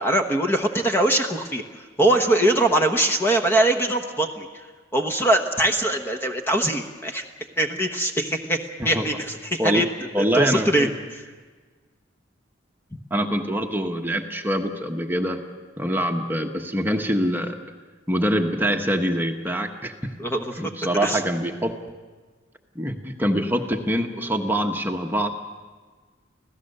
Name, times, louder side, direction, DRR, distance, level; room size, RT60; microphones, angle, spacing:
voice 1, 0.0-1.6 2.0-4.5 4.9-7.2 7.6-8.6 8.8-9.9 10.2-11.2 20.2-20.5 21.0-21.2, right 1 dB, 10° left, 4 dB, 1.1 m, -22 dB
voice 2, 10.1-10.9 13.1-15.4 15.8-17.6 18.1-19.9 20.6-21.7 22.7-25.3, equal, 10° right, 3 dB, 1.2 m, -24 dB
26.0 x 16.5 x 6.7 m, 1.4 s
head